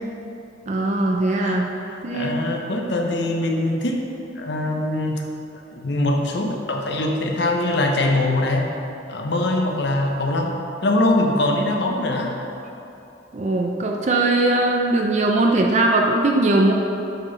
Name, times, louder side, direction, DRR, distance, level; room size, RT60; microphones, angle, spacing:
voice 1, 0.7-1.7 2.0-2.5 13.3-16.7, right 2 dB, 35° right, 1 dB, 0.4 m, -20 dB
voice 2, 1.3-4.0 4.4-5.2 5.7-8.7 9.1-10.6 10.8-12.4, left 1 dB, 60° left, 1 dB, 0.8 m, -22 dB
8.2 x 5.8 x 4.0 m, 2.9 s
head